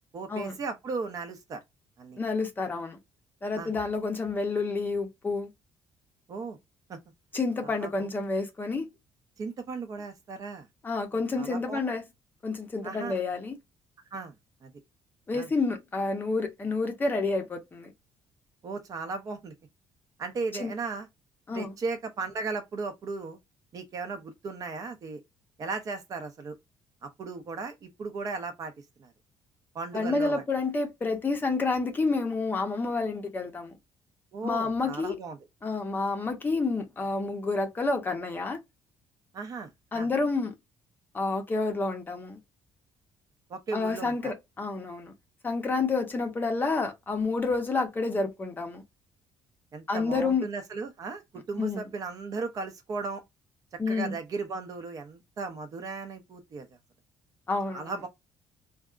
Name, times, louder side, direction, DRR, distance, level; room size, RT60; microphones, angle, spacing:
voice 1, 0.1-1.6 2.0-2.2 3.6-3.7 6.3-6.6 6.9-7.0 7.6-8.1 9.4-10.7 11.1-11.8 12.8-13.2 14.1-14.3 14.6-14.7 15.3-15.5 18.6-19.5 20.2-21.1 21.5-23.4 23.7-25.2 25.6-26.5 27.0-28.7 29.0-29.1 29.7-30.4 34.3-35.4 39.3-40.1 43.5-44.3 49.7-51.2 51.5-53.2 53.9-56.7 57.7-58.1, right 4 dB, 40° right, 0.6 m, -36 dB
voice 2, 2.2-3.0 3.4-5.5 7.3-8.9 10.8-12.0 12.4-13.6 15.3-17.9 20.5-20.7 21.5-21.7 29.9-33.7 34.4-35.2 35.6-38.6 39.9-40.5 41.1-42.4 43.7-45.1 45.4-48.8 49.9-50.4 51.6-51.8 53.8-54.2 57.5-57.9, left 3 dB, 20° left, 0.6 m, -29 dB
2.7 x 2.3 x 2.3 m
cardioid pair, 135°, 9 cm